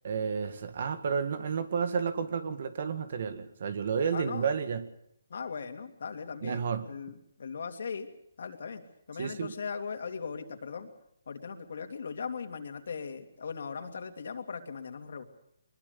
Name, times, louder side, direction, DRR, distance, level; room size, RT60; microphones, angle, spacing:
voice 1, 0.0-4.9 6.4-6.8 9.2-9.5, right 6 dB, 50° right, 11 dB, 1.9 m, -31 dB
voice 2, 4.1-4.5 5.3-8.1 8.4-8.8 9.1-10.9 11.3-15.2, left 5 dB, 60° left, 6 dB, 3.0 m, -39 dB
23.0 x 21.5 x 6.9 m, 0.73 s
hypercardioid pair, 165°, 0 cm